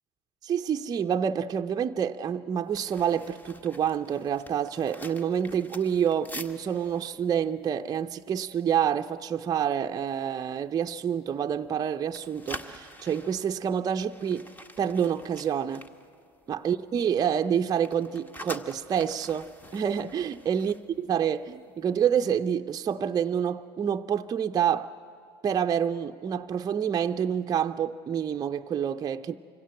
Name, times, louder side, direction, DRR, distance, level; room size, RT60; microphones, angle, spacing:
voice 1, 0.4-14.5 14.8-15.9 16.5-24.9 25.4-29.3, right 8 dB, 30° right, 0.6 m, -28 dB
sound 1, 2.7-8.8 9.1-9.3 9.7-10.1 10.5-11.8 12.0-16.8 17.1-21.6 21.9-22.1, equal, 15° left, 1.4 m, -46 dB
24.5 x 16.5 x 7.7 m
hypercardioid pair, 75°, 13 cm